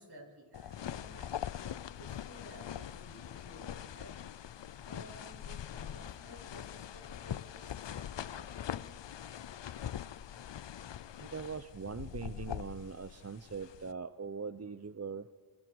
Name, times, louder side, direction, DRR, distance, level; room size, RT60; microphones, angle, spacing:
voice 1, 0.0-9.0, right 1 dB, 50° right, -1 dB, 7.1 m, -55 dB
sound 1, 0.5-13.9, left 10 dB, 60° left, 0.6 m, -43 dB
voice 2, 11.2-15.3, right 5 dB, 30° right, 12 dB, 0.6 m, -41 dB
27.0 x 22.0 x 4.7 m, 1.5 s
wide cardioid pair, 45°, 49 cm